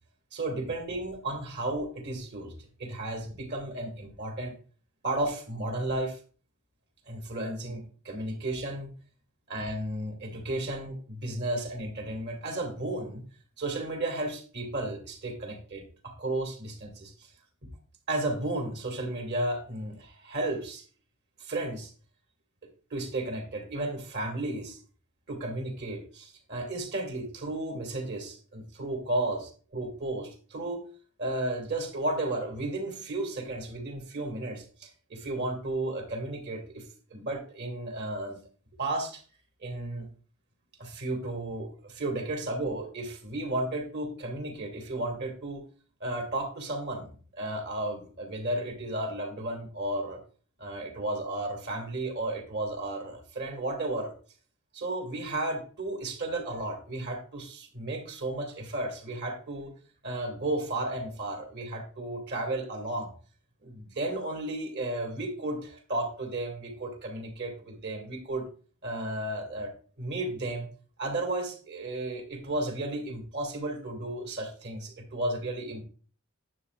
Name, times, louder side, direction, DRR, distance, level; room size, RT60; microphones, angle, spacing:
voice 1, 0.3-2.5 2.8-4.6 5.0-6.2 7.1-8.9 9.5-13.2 13.6-17.3 18.1-20.8 21.4-21.9 22.9-24.8 25.3-30.8 31.2-38.4 38.8-39.2 39.6-40.1 40.8-45.6 46.0-50.2 50.6-54.1 54.7-59.7 60.0-63.1 63.6-68.5 68.8-69.7 70.0-70.7 71.0-75.9, right 2 dB, 55° right, 3 dB, 1.8 m, -33 dB
9.7 x 6.9 x 2.3 m, 0.40 s
head